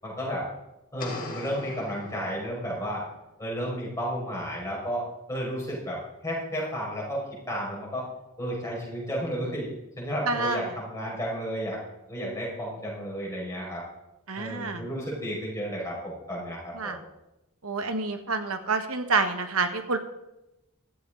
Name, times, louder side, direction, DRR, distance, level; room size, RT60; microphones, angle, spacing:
voice 1, 0.0-0.5 0.9-3.0 3.4-5.0 5.3-6.0 6.2-7.2 7.5-8.1 8.4-9.7 10.0-11.8 12.1-13.8 14.4-17.0, equal, 15° left, -4 dB, 5.5 m, -32 dB
sound 1, 1.0-2.9, left 2 dB, 40° left, 2.3 m, -40 dB
voice 2, 10.2-10.8 14.3-14.9 16.7-17.0 17.6-20.0, right 3 dB, 85° right, 8 dB, 1.4 m, -28 dB
16.0 x 13.5 x 3.9 m, 0.93 s
head